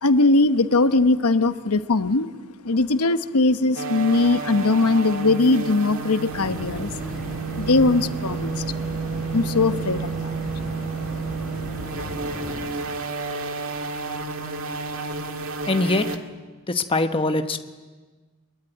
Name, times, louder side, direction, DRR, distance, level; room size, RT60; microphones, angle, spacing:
voice 1, 0.0-2.3 2.6-6.9 7.6-8.6 9.3-10.4, left 3 dB, 90° left, 11 dB, 1.0 m, -20 dB
sound 1, 3.8-16.2, right 4 dB, 65° right, 2.0 m, -31 dB
sound 2, 6.3-12.7, equal, ahead, 5.4 m, -36 dB
voice 2, 15.7-16.1 16.7-17.6, left 2 dB, 25° left, 7 dB, 1.1 m, -22 dB
24.5 x 22.0 x 9.2 m, 1.3 s
head